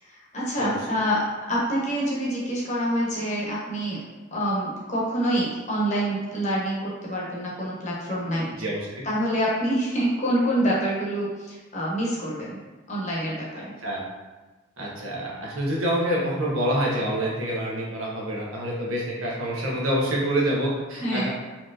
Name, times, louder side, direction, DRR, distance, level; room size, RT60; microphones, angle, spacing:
voice 1, 0.0-1.2 1.5-4.0 4.3-8.5 9.0-12.6 12.9-13.7 21.0-21.3, equal, 35° left, -5 dB, 0.9 m, -26 dB
voice 2, 8.6-9.0 13.8-14.0 14.8-21.3, equal, 90° right, -4 dB, 1.0 m, -27 dB
4.2 x 3.0 x 2.6 m, 1.2 s
head